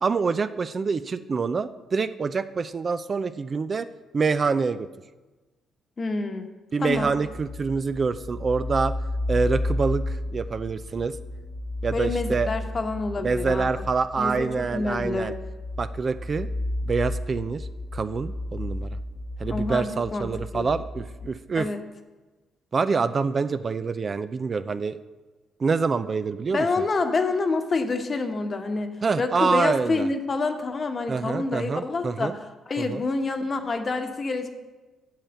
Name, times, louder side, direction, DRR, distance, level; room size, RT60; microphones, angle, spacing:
voice 1, 0.0-3.9 4.1-4.9 6.7-8.9 9.3-11.2 11.8-12.5 13.2-15.3 15.8-16.5 16.9-19.0 19.4-21.7 22.7-25.0 25.6-26.7 29.0-30.1 31.1-32.4 32.8-33.0, right 4 dB, 40° right, 12 dB, 0.4 m, -26 dB
voice 2, 6.0-6.5 6.8-7.1 11.9-13.7 14.2-15.3 19.5-20.3 20.5-20.7 21.6-21.8 26.5-32.4 32.7-34.5, left 3 dB, 35° left, 6 dB, 1.1 m, -27 dB
sound 1, 6.9-21.3, left 1 dB, 80° left, 2.0 m, -32 dB
8.8 x 7.4 x 7.1 m, 1.2 s
cardioid pair, 90°, 0 cm